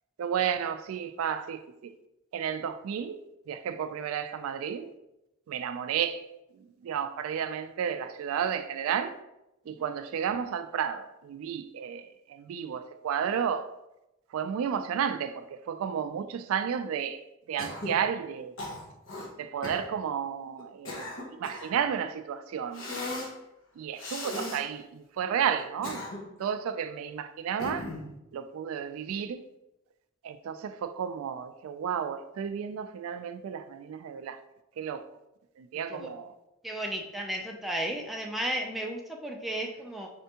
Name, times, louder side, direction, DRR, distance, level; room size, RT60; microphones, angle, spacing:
voice 1, 0.2-1.6 2.3-3.2 3.5-4.9 5.5-6.2 6.5-9.2 9.7-13.7 14.3-17.2 17.5-18.5 19.4-23.2 23.8-26.1 26.4-27.9 28.3-29.5 30.2-34.4 34.8-35.1 35.6-36.3, right 8 dB, 90° right, 0.3 m, -32 dB
Cough, 17.6-18.0 18.6-19.3 19.6-19.9 20.6-21.8 22.7-23.3 24.0-24.6 25.6-26.4 27.6-28.1, left 2 dB, 65° left, 0.9 m, -37 dB
voice 2, 36.6-40.1, right 1 dB, ahead, 0.4 m, -34 dB
4.3 x 3.3 x 2.8 m
head